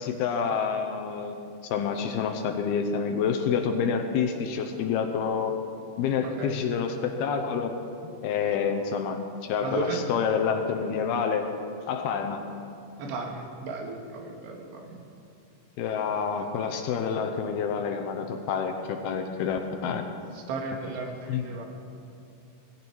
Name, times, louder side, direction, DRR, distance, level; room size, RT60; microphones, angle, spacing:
voice 1, 0.0-1.4 1.7-5.6 6.0-7.8 8.0-11.5 11.9-12.4 15.8-20.1 21.3-21.7, left 6 dB, 75° left, 5 dB, 2.6 m, -28 dB
voice 2, 6.2-6.6 9.6-10.0 13.0-15.0 20.3-21.7, right 4 dB, 80° right, 2 dB, 3.8 m, -35 dB
18.5 x 17.0 x 4.7 m, 2.5 s
omnidirectional pair, 4.9 m